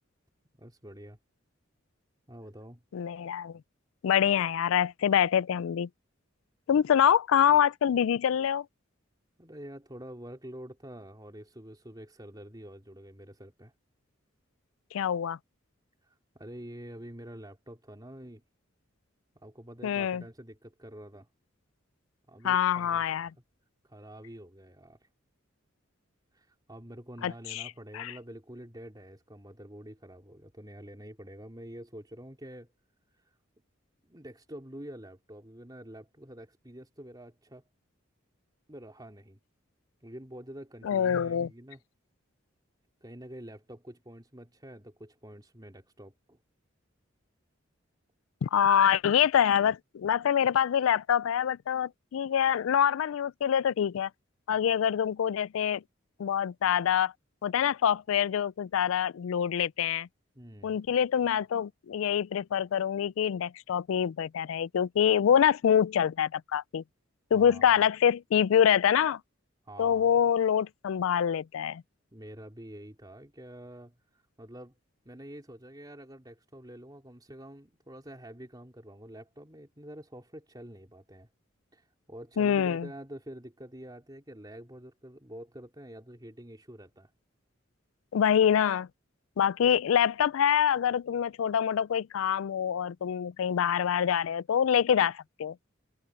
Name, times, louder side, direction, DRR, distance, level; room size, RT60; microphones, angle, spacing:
voice 1, 0.6-1.2 2.3-2.8 9.4-13.7 16.0-18.4 19.4-21.3 22.3-23.3 23.8-25.1 26.3-32.7 33.2-33.3 34.0-37.7 38.7-39.4 40.0-41.8 43.0-46.4 60.4-60.8 67.3-67.7 69.7-70.3 72.1-74.8 75.0-81.3 81.7-87.1, right 1 dB, 20° right, 3.6 m, -47 dB
voice 2, 2.9-3.6 4.0-5.9 6.7-8.7 14.9-15.4 19.8-20.2 22.4-23.3 27.2-28.1 40.8-41.5 48.4-54.1 54.5-55.8 56.2-57.1 57.4-60.1 60.6-66.8 67.3-69.2 69.8-71.8 82.4-82.9 88.1-88.9 89.4-95.6, left 8 dB, 90° left, 0.3 m, -25 dB
head